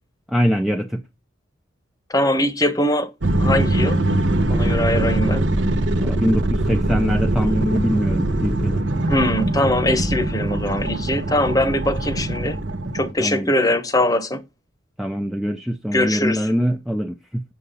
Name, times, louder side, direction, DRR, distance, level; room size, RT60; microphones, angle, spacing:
voice 1, 0.3-1.0 6.0-8.8 13.2-13.5 15.0-17.4, equal, ahead, 0.5 m, -23 dB
voice 2, 2.1-4.0 4.5-5.4 9.1-12.6 12.9-14.4 15.9-16.5, left 1 dB, 15° left, 0.9 m, -21 dB
sound 1, 3.2-13.1, right 1 dB, 65° right, 0.9 m, -22 dB
8.3 x 6.7 x 5.5 m
head